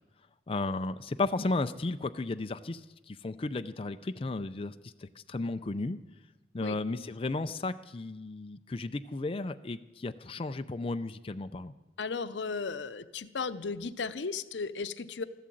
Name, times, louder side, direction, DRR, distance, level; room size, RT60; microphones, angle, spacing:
voice 1, 0.5-6.0 6.5-11.7, left 3 dB, 30° left, 9 dB, 0.4 m, -34 dB
voice 2, 12.0-15.2, left 4 dB, 90° left, 12 dB, 0.7 m, -35 dB
13.5 x 12.5 x 7.7 m, 1.1 s
head